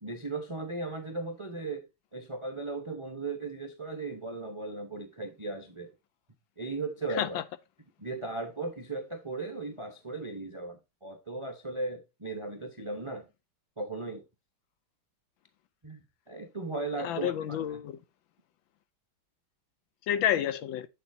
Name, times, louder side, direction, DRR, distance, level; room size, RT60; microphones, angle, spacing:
voice 1, 0.0-1.9 2.1-5.9 6.6-7.4 8.0-13.3 13.8-14.2 15.8-17.7, right 3 dB, 40° right, 0.4 m, -37 dB
voice 2, 17.0-18.0 20.1-20.9, left 10 dB, 75° left, 1.2 m, -29 dB
8.3 x 7.1 x 2.7 m
omnidirectional pair, 2.4 m